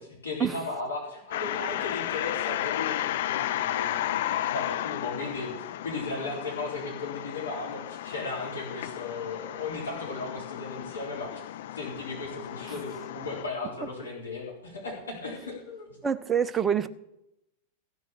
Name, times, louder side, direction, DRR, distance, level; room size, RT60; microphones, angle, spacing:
voice 1, 0.0-11.5 11.7-16.0, left 3 dB, 75° left, -4 dB, 3.6 m, -36 dB
sound 1, 1.3-13.4, left 13 dB, 55° left, 0.5 m, -33 dB
voice 2, 16.0-16.9, right 8 dB, 20° right, 13 dB, 0.7 m, -26 dB
15.0 x 6.2 x 7.0 m, 0.85 s
figure-of-eight pair, 90°, 0 cm